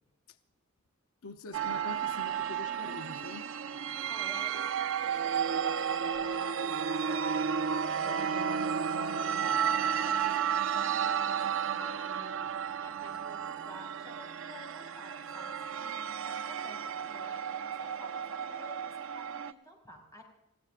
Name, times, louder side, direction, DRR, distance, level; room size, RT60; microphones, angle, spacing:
voice 1, 1.2-3.5, left 3 dB, 80° left, 0.7 m, -44 dB
sound 1, 1.5-19.5, right 7 dB, 65° right, 0.6 m, -33 dB
voice 2, 4.0-12.5 12.8-20.2, equal, 15° left, 5.4 m, -52 dB
sound 2, 6.1-15.0, left 1 dB, 40° left, 7.0 m, -51 dB
29.5 x 15.5 x 2.4 m
head